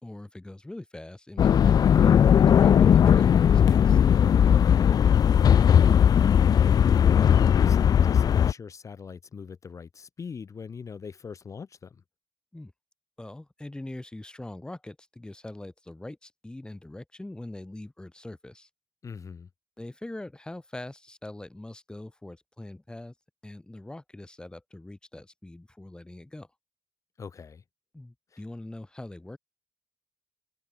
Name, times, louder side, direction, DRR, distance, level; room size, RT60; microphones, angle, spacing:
voice 1, 0.0-4.0 12.5-12.7 13.2-18.7 19.8-23.1 23.4-26.5 27.9-29.4, left 1 dB, 10° left, 4.3 m, -42 dB
sound 1, 1.4-8.5, left 8 dB, 65° left, 0.8 m, -18 dB
voice 2, 4.5-4.9 7.0-12.0 19.0-19.5 27.2-27.6 28.3-28.4, left 6 dB, 45° left, 3.5 m, -42 dB
cardioid pair, 110°, 7 cm